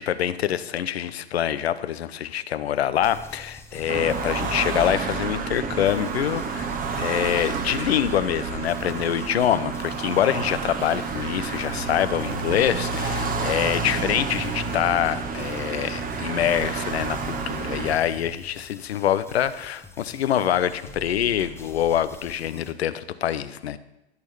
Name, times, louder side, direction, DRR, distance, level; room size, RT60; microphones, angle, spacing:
voice 1, 0.0-23.8, left 10 dB, 75° left, 14 dB, 0.8 m, -25 dB
sound 1, 3.0-22.7, left 2 dB, 10° left, 1.0 m, -44 dB
sound 2, 3.9-18.0, right 5 dB, 25° right, 1.3 m, -29 dB
12.5 x 6.4 x 6.8 m, 0.91 s
hypercardioid pair, 100°, 32 cm